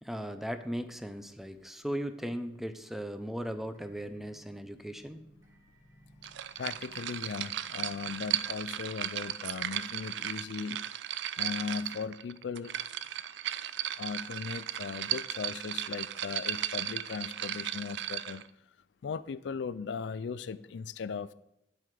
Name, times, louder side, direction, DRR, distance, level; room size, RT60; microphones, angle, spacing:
voice 1, 0.0-5.2, equal, ahead, 10 dB, 0.6 m, -37 dB
sound 1, 3.5-10.1, equal, 20° right, 3.5 m, -61 dB
sound 2, 6.2-18.5, right 12 dB, 75° right, 0.4 m, -36 dB
voice 2, 6.6-10.9 11.4-12.7 14.0-18.4 19.0-21.3, left 5 dB, 75° left, 16 dB, 0.4 m, -38 dB
9.5 x 7.8 x 4.9 m, 0.83 s
head